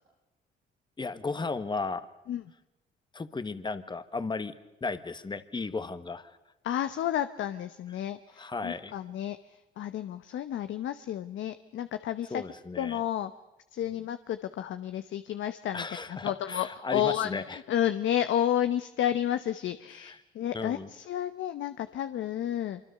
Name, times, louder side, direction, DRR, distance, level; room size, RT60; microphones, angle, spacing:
voice 1, 1.0-2.1 3.1-4.5 4.8-6.4 8.4-8.9 12.3-13.0 15.7-17.6 20.0-20.2 20.5-20.9, left 3 dB, 25° left, 12 dB, 1.5 m, -35 dB
voice 2, 6.6-9.4 9.8-12.4 12.8-13.3 13.7-22.8, left 11 dB, 75° left, 11 dB, 1.0 m, -31 dB
25.0 x 24.5 x 6.8 m, 0.98 s
cardioid pair, 90°, 20 cm